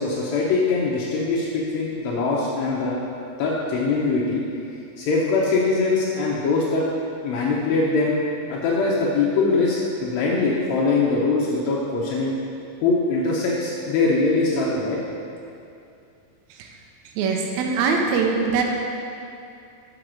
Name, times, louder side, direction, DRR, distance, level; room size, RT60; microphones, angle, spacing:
voice 1, 0.0-3.0 3.4-4.4 5.0-6.8 7.2-8.2 8.5-12.3 12.8-15.0, left 3 dB, 80° left, -5 dB, 1.6 m, -22 dB
voice 2, 17.2-18.6, right 5 dB, 80° right, 1 dB, 1.6 m, -22 dB
6.3 x 5.0 x 6.1 m, 2.6 s
omnidirectional pair, 4.0 m